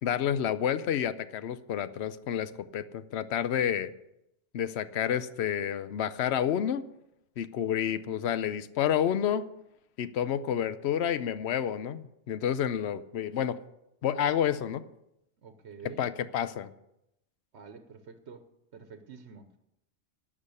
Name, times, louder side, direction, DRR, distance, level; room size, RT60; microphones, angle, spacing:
voice 1, 0.0-3.9 4.5-6.9 7.4-9.4 10.0-13.6 14.0-14.8 16.0-16.7, left 9 dB, 75° left, 13 dB, 0.9 m, -29 dB
voice 2, 15.4-16.1 17.5-18.5 18.7-19.6, right 6 dB, 90° right, 7 dB, 1.2 m, -48 dB
12.0 x 7.5 x 8.3 m, 0.84 s
omnidirectional pair, 1.1 m